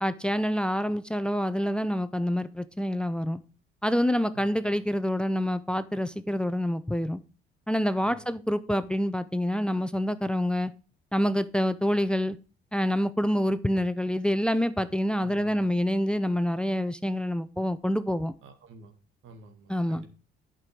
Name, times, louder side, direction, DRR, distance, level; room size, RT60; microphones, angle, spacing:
voice 1, 0.0-3.4 3.8-7.2 7.7-10.7 11.1-12.4 12.7-18.3 19.7-20.0, equal, 5° left, 14 dB, 0.6 m, -27 dB
voice 2, 4.3-4.8 8.0-8.3 15.2-15.6 18.4-18.9 19.2-20.1, right 2 dB, 80° right, 6 dB, 2.0 m, -50 dB
8.7 x 6.1 x 4.9 m, 0.35 s
cardioid pair, 90°, 20 cm